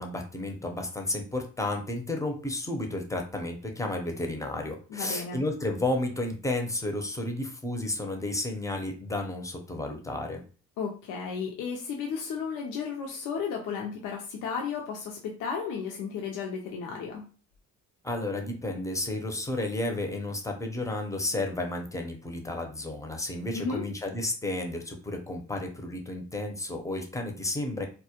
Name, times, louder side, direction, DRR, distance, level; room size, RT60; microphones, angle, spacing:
voice 1, 0.0-10.4 18.0-27.9, left 2 dB, 10° left, 3 dB, 0.5 m, -32 dB
voice 2, 4.9-5.4 10.8-17.3 23.5-23.8, left 6 dB, 85° left, 0 dB, 0.5 m, -34 dB
2.2 x 2.1 x 2.8 m, 0.37 s
cardioid pair, 90°, 30 cm